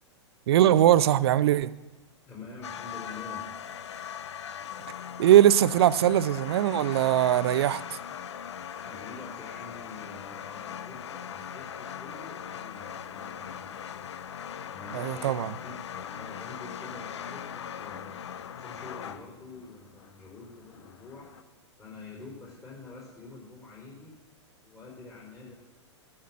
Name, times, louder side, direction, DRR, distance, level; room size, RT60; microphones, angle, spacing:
voice 1, 0.5-1.7 5.2-8.0 14.9-15.5, right 12 dB, 60° right, 16 dB, 0.6 m, -21 dB
voice 2, 2.3-3.5 8.7-14.1 14.7-18.2 18.5-21.3 21.8-24.1 24.6-25.5, left 3 dB, 20° left, -3 dB, 4.3 m, -46 dB
sound 1, 2.6-21.4, left 9 dB, 70° left, 0.6 m, -40 dB
13.0 x 5.9 x 7.7 m, 1.1 s
figure-of-eight pair, 105°, 15 cm